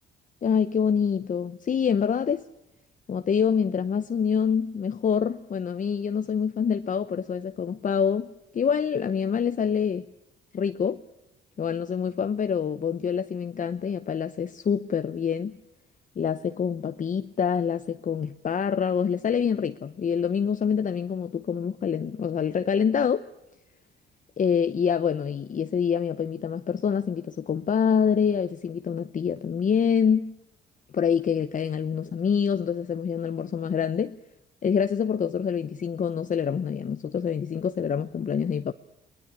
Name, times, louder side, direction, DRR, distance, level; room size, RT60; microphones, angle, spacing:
voice 1, 0.4-2.5 3.1-10.1 10.5-11.0 11.6-15.6 16.2-23.3 24.4-30.3 30.9-34.2 34.6-38.7, left 7 dB, 40° left, 0.8 m, -26 dB
21.5 x 19.5 x 9.9 m
cardioid pair, 90°, 20 cm